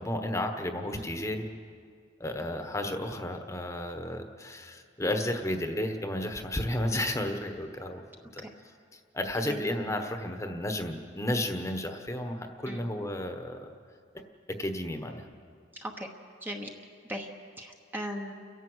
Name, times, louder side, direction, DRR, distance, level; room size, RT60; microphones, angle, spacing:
voice 1, 0.0-1.5 2.2-8.0 8.3-8.4 8.9-13.7 14.6-15.2, left 1 dB, 15° left, 5 dB, 1.2 m, -32 dB
voice 2, 15.7-16.1 16.4-16.7 17.0-17.3 17.6-18.3, equal, 10° right, 2 dB, 1.1 m, -38 dB
30.0 x 11.0 x 8.0 m, 2.2 s
head